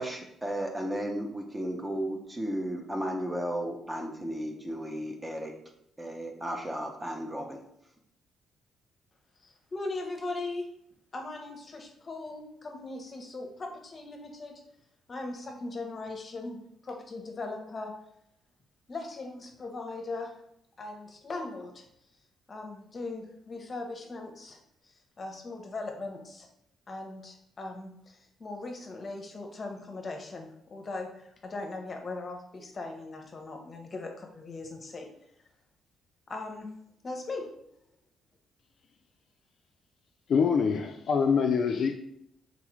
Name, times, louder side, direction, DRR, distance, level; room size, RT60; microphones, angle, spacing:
voice 1, 0.0-5.5 6.0-7.6, right 1 dB, 15° right, 0.6 m, -34 dB
voice 2, 9.4-10.7 11.1-14.6 15.1-18.0 18.9-20.3 20.8-21.8 22.5-26.5 26.9-35.1 36.3-36.7 37.0-37.5, left 3 dB, 35° left, 0.7 m, -39 dB
voice 3, 40.3-41.9, left 6 dB, 60° left, 0.3 m, -25 dB
3.9 x 2.4 x 3.1 m
cardioid pair, 90°, 0 cm